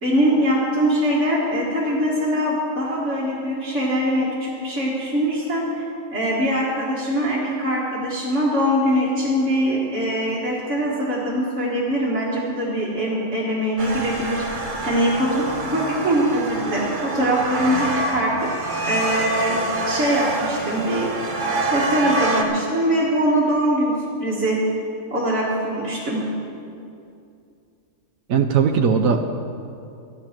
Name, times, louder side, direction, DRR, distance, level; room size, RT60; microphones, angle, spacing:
voice 1, 0.0-14.4 14.9-18.5 18.8-19.6 19.9-21.1 21.7-23.9 24.2-24.6 25.1-26.2, equal, 60° right, -7 dB, 2.3 m, -22 dB
sound 1, 13.8-22.4, right 2 dB, 40° right, 1.2 m, -26 dB
voice 2, 28.3-29.3, right 6 dB, 85° right, 4 dB, 1.2 m, -18 dB
13.0 x 11.5 x 5.9 m, 2.5 s
omnidirectional pair, 1.4 m